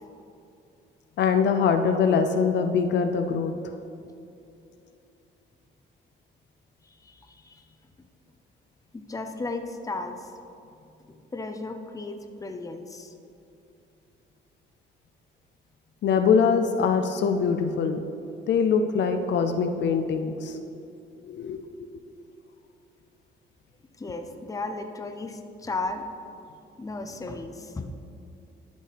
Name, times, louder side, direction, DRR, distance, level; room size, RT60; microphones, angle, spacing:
voice 1, 1.2-3.5 16.0-18.0 18.5-20.6 21.3-21.9, left 6 dB, 65° left, 7 dB, 0.5 m, -23 dB
voice 2, 6.8-7.6 8.9-10.3 11.3-13.1 24.0-26.0 26.8-27.9, left 3 dB, 15° left, 5 dB, 0.6 m, -35 dB
12.0 x 5.4 x 3.4 m, 2.7 s
cardioid pair, 90°, 20 cm